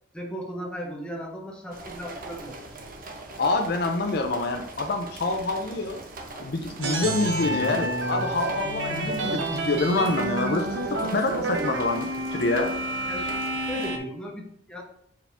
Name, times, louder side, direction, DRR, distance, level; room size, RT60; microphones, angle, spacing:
voice 1, 0.1-3.0 8.9-9.1 13.1-14.8, equal, 5° left, -1 dB, 1.0 m, -37 dB
sound 1, 1.7-13.9, right 2 dB, 50° right, 0.9 m, -42 dB
voice 2, 3.4-6.0 6.4-12.7, left 3 dB, 55° left, 5 dB, 0.6 m, -26 dB
sound 2, 6.8-14.0, right 2 dB, 80° right, 0.9 m, -29 dB
5.7 x 4.8 x 3.4 m, 0.71 s
head